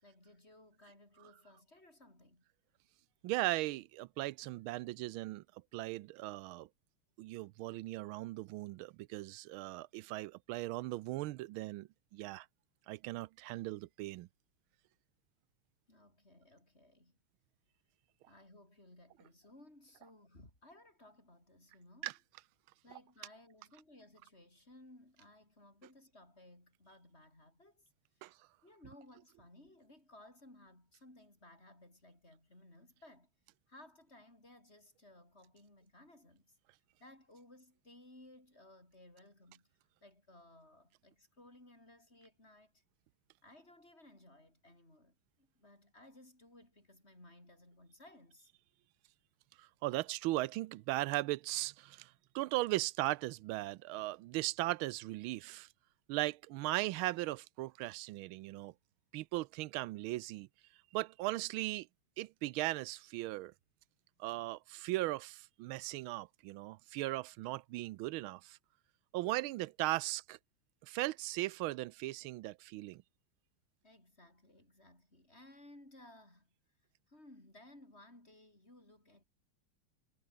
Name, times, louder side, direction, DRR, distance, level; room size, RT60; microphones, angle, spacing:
voice 1, 0.0-2.4 15.9-17.2 18.3-22.1 22.8-27.8 28.2-28.3 28.6-33.3 33.7-36.6 37.0-39.7 40.0-42.8 43.4-48.5 73.8-76.5 77.1-79.2, left 1 dB, 30° left, 8.1 m, -59 dB
voice 2, 3.2-5.4 5.7-6.7 7.2-12.5 12.9-14.3 22.0-22.1 28.2-28.3 49.6-55.7 56.1-58.7 59.1-60.5 60.9-61.9 62.2-63.5 64.2-68.6 69.1-70.4 70.9-73.0, right 18 dB, 80° right, 1.4 m, -38 dB
omnidirectional pair, 2.4 m